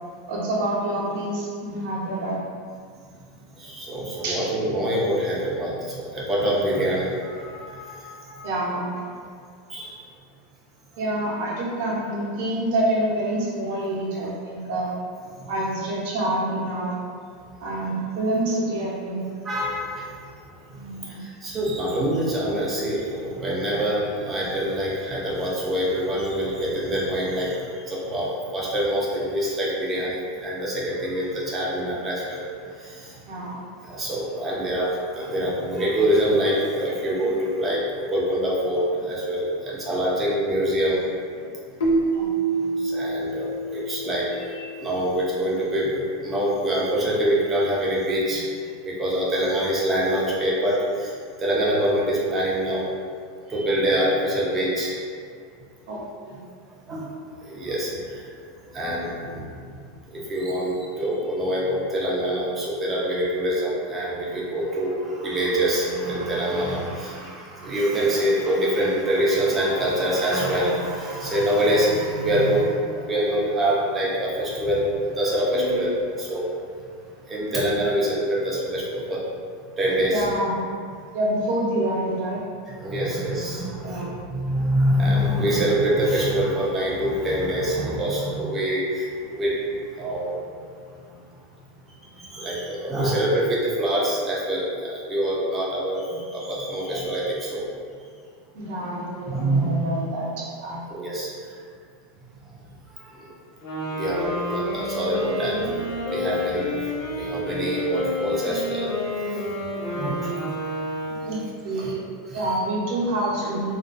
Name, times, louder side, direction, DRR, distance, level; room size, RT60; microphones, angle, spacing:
voice 1, 0.3-2.4 4.2-4.5 8.4-8.9 11.0-14.9 15.5-17.0 17.6-19.2 20.7-21.2 33.3-33.6 42.1-42.7 55.9-56.4 56.9-57.0 80.1-80.7 81.1-82.4 83.8-84.2 89.3-89.4 98.5-100.8 111.2-112.0 112.3-113.8, right 1 dB, 60° right, -5 dB, 0.6 m, -27 dB
voice 2, 3.6-8.4 9.7-9.9 19.4-20.1 21.4-27.6 27.9-32.4 32.8-33.1 33.9-34.9 35.1-38.8 39.1-41.0 42.9-48.4 48.8-51.1 51.4-52.8 53.5-54.9 56.9-57.0 57.5-57.9 58.7-59.4 60.1-76.4 77.3-79.2 79.8-80.3 82.8-89.0 89.4-89.5 90.0-90.4 92.3-97.6 99.3-99.7 100.9-101.3 103.9-105.8 106.1-106.7 107.2-108.9 109.9-110.3 111.8-111.9 112.3-112.5, right 1 dB, 15° right, -6 dB, 0.4 m, -25 dB
Keyboard (musical), 41.8-44.6, right 3 dB, 85° left, 0.5 m, -26 dB
Wind instrument woodwind instrument, 103.5-111.4, left 1 dB, 40° left, 0.7 m, -29 dB
2.4 x 2.2 x 2.4 m, 2.1 s
supercardioid pair, 155°, 0 cm